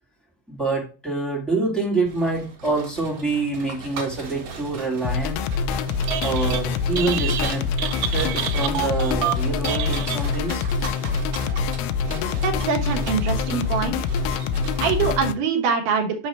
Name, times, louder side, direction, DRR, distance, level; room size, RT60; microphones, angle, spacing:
voice 1, 0.5-5.4 6.2-7.6 8.1-10.7, right 3 dB, ahead, -4 dB, 1.7 m, -26 dB
sound 1, 2.0-15.0, right 4 dB, 55° right, 2.1 m, -38 dB
sound 2, 5.0-15.3, left 5 dB, 80° left, 2.5 m, -25 dB
Telephone, 5.9-6.6 6.9-10.6, right 13 dB, 90° right, 2.6 m, -29 dB
voice 2, 12.4-14.0 14.8-16.3, right 5 dB, 70° right, 4 dB, 2.2 m, -24 dB
6.1 x 5.4 x 4.4 m, 0.33 s
omnidirectional pair, 4.6 m